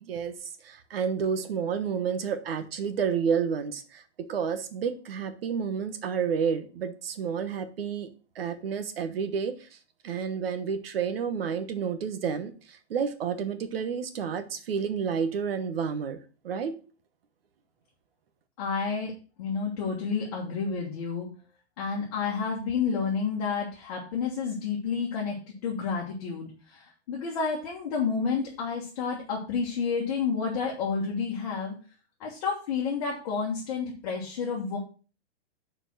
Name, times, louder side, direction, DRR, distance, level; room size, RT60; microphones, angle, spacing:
voice 1, 0.0-8.1 8.3-9.6 10.0-16.2 16.4-16.7, right 6 dB, 60° right, 10 dB, 1.2 m, -30 dB
voice 2, 18.6-19.1 19.4-21.3 21.8-31.7 32.2-34.8, left 5 dB, 35° left, -2 dB, 1.6 m, -30 dB
6.6 x 4.6 x 6.1 m, 0.37 s
hypercardioid pair, 175°, 34 cm